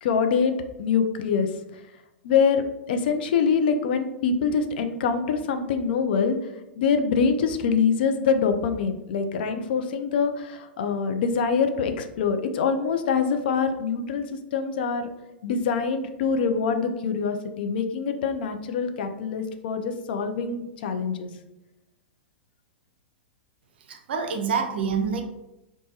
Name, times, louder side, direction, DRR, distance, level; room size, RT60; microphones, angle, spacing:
voice 1, 0.0-0.5 0.8-1.5 2.2-6.4 6.8-14.2 14.5-15.1 15.4-21.3, left 6 dB, 55° left, 7 dB, 0.3 m, -24 dB
voice 2, 23.9-25.2, right 6 dB, 65° right, 4 dB, 0.5 m, -26 dB
3.1 x 2.1 x 2.7 m, 0.94 s
figure-of-eight pair, 100°, 6 cm